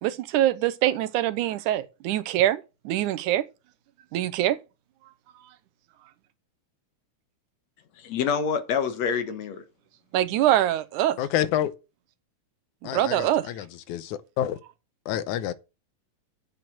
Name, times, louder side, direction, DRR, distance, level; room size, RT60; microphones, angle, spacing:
voice 1, 0.0-3.5 4.1-4.6 10.1-11.2 12.8-13.5, right 13 dB, 80° right, 2.3 m, -24 dB
voice 2, 8.0-9.6, left 6 dB, 65° left, 2.3 m, -27 dB
voice 3, 11.2-11.7 12.8-14.6 15.1-15.5, left 11 dB, 85° left, 2.2 m, -28 dB
7.7 x 7.6 x 7.6 m
omnidirectional pair, 3.5 m